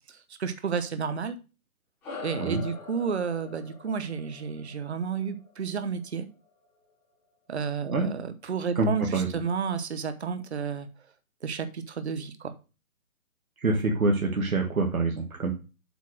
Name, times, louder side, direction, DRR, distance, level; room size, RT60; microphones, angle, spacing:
voice 1, 0.1-1.4 2.2-6.3 7.5-10.9 11.4-12.5, right 6 dB, 50° right, 10 dB, 1.0 m, -31 dB
sound 1, 2.0-6.8, left 4 dB, 5° left, 1.0 m, -44 dB
voice 2, 8.8-9.3 13.6-15.5, right 3 dB, 70° right, 2 dB, 1.8 m, -25 dB
8.1 x 4.2 x 6.4 m, 0.31 s
hypercardioid pair, 165°, 43 cm